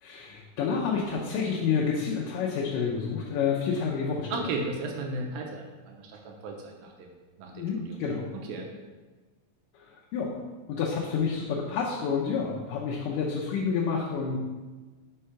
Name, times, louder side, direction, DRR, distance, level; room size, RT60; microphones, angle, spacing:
voice 1, 0.0-4.3 7.5-8.3 9.7-10.4 10.7-14.4, left 6 dB, 75° left, -5 dB, 2.3 m, -29 dB
voice 2, 4.3-8.0 8.3-8.7, right 3 dB, 90° right, 0 dB, 2.6 m, -36 dB
5.5 x 4.9 x 5.7 m, 1.3 s
omnidirectional pair, 4.1 m